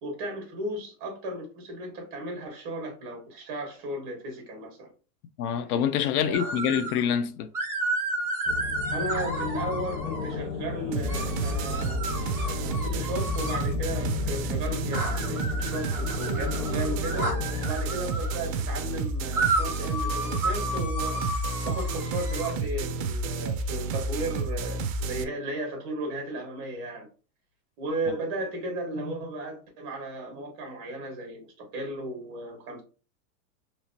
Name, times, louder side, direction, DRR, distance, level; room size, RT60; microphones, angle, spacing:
voice 1, 0.0-4.9 6.2-6.9 8.9-17.3 17.6-21.2 21.6-27.1 27.8-32.8, right 1 dB, 35° right, 1.4 m, -35 dB
voice 2, 5.4-7.5, left 8 dB, 90° left, 0.7 m, -26 dB
sound 1, 6.3-7.0 7.5-10.3 11.1-13.7 14.9-18.4 19.3-22.5, right 2 dB, 5° right, 1.0 m, -32 dB
sound 2, 8.5-17.7, left 5 dB, 65° left, 1.2 m, -34 dB
sound 3, 10.9-25.2, right 3 dB, 60° right, 0.6 m, -30 dB
3.1 x 3.1 x 2.7 m
supercardioid pair, 165°, 43 cm